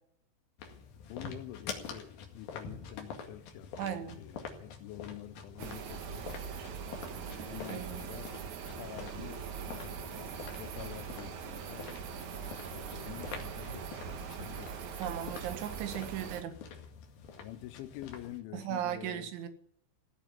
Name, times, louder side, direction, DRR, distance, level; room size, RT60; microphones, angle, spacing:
sound 1, 0.6-18.4, left 6 dB, 55° left, 3.6 m, -47 dB
voice 1, 1.1-6.3 7.0-8.4 8.8-11.9 12.3-14.9 17.4-19.3, left 13 dB, 85° left, 3.4 m, -47 dB
voice 2, 3.8-4.2 7.7-8.0 15.0-16.6 18.5-19.5, right 10 dB, 80° right, 4.0 m, -37 dB
sound 2, 5.6-16.4, right 7 dB, 60° right, 2.1 m, -42 dB
16.5 x 8.8 x 9.5 m
omnidirectional pair, 5.3 m